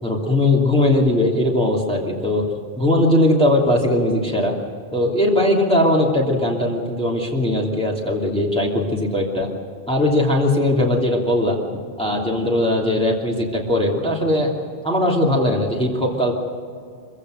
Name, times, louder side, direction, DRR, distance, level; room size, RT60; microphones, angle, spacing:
voice 1, 0.0-2.4 2.8-4.5 4.9-9.5 9.9-11.6 12.0-14.5 14.8-16.3, left 1 dB, 5° left, -3 dB, 2.8 m, -19 dB
25.5 x 15.5 x 6.6 m, 2.2 s
omnidirectional pair, 1.1 m